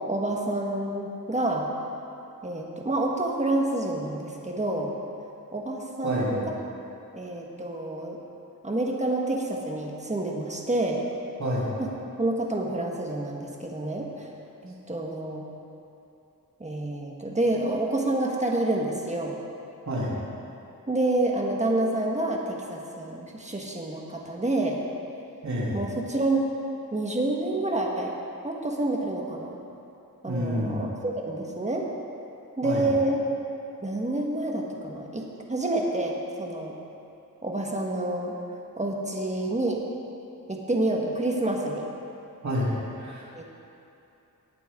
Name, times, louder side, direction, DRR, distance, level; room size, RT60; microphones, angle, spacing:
voice 1, 0.1-1.7 2.4-5.0 5.5-6.4 7.1-8.2 8.6-11.0 11.8-11.9 12.2-14.3 14.6-15.4 16.6-19.4 20.9-24.8 25.7-26.4 26.9-28.1 28.4-29.6 30.2-31.9 32.6-33.2 33.8-36.7 37.4-38.4 38.8-39.8 40.5-41.8 43.3-43.4, right 2 dB, 20° right, -1 dB, 1.6 m, -28 dB
voice 2, 6.0-6.4 11.4-11.7 19.9-20.1 25.4-25.8 30.3-30.8 32.6-32.9 42.4-43.4, equal, 50° right, -6 dB, 3.3 m, -28 dB
18.5 x 8.7 x 3.8 m, 2.8 s
wide cardioid pair, 95°, 36 cm